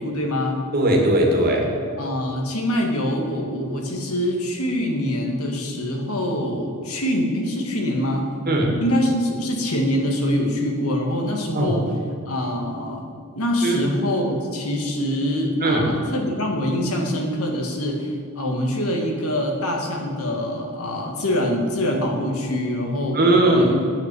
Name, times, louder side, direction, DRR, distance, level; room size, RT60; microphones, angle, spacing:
voice 1, 0.0-0.6 2.0-8.3 8.8-11.9 12.3-13.1 13.3-23.2 23.5-23.8, left 1 dB, 75° left, 2 dB, 2.0 m, -24 dB
voice 2, 0.7-1.7 8.5-8.8 11.5-11.8 13.6-13.8 15.6-15.9 23.1-23.7, right 1 dB, 45° right, 0 dB, 2.1 m, -18 dB
9.1 x 8.4 x 7.8 m, 2.3 s
head